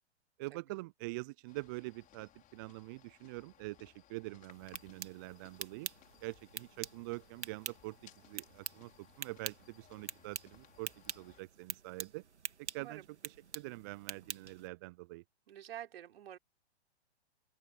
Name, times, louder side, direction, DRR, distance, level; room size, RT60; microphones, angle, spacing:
voice 1, 0.4-5.9 6.2-12.2 12.6-15.2, right 23 dB, 20° right, 0.4 m, -45 dB
sound 1, 1.5-11.4, left 12 dB, 25° left, 5.3 m, -63 dB
sound 2, 4.5-14.7, right 6 dB, 80° right, 2.2 m, -46 dB
voice 2, 15.5-16.4, right 11 dB, 60° right, 3.7 m, -48 dB
open air
figure-of-eight pair, 115°, 34 cm